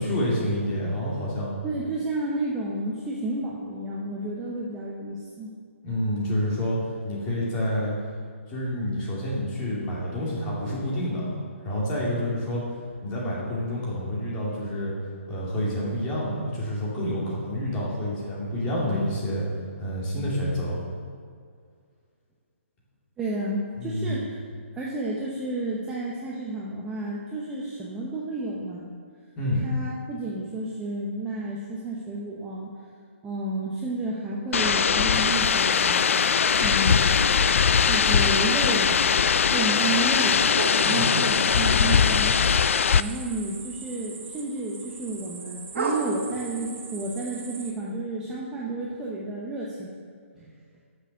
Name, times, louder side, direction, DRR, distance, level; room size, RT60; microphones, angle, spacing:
voice 1, 0.0-1.5 5.8-6.8 7.1-7.9 8.5-12.6 13.0-14.9 15.3-19.4 19.8-20.8 23.8-24.2 29.4-29.6 40.8-41.1, equal, 15° left, -5 dB, 2.2 m, -28 dB
voice 2, 1.6-5.5 23.2-24.3 24.7-28.9 29.6-32.7 33.2-36.2 36.6-37.3 37.9-39.1 39.5-40.4 40.8-42.4 42.9-50.0 50.4-50.5, right 2 dB, 10° right, -5 dB, 0.8 m, -31 dB
sound 1, 34.5-43.0, left 6 dB, 70° left, 0.3 m, -21 dB
sound 2, 40.6-47.7, right 4 dB, 60° right, 1.4 m, -36 dB
9.7 x 6.9 x 6.5 m, 2.1 s
hypercardioid pair, 165°, 7 cm